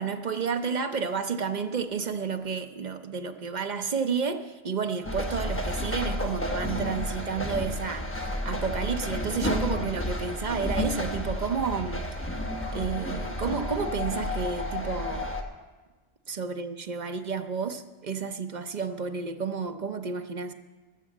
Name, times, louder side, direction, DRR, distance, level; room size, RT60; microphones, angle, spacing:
voice 1, 0.0-8.1 8.4-12.1 12.7-15.3 16.3-20.5, right 5 dB, 50° right, 7 dB, 0.8 m, -31 dB
sound 1, 5.0-15.4, left 1 dB, 15° left, 1.0 m, -31 dB
14.0 x 6.9 x 7.3 m, 1.3 s
omnidirectional pair, 1.1 m